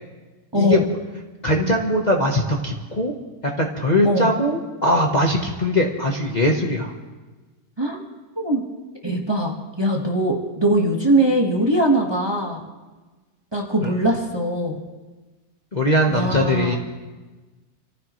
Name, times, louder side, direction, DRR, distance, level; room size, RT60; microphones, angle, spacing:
voice 1, 0.5-0.8 4.0-4.3 7.8-8.0 8.4-8.6 9.0-12.6 13.5-14.8 16.1-16.8, right 1 dB, 15° right, -1 dB, 1.4 m, -21 dB
voice 2, 1.4-3.1 3.6-6.9 13.8-13.9 15.7-16.8, left 1 dB, 30° left, -1 dB, 1.1 m, -20 dB
27.0 x 14.5 x 3.1 m, 1.3 s
omnidirectional pair, 1.7 m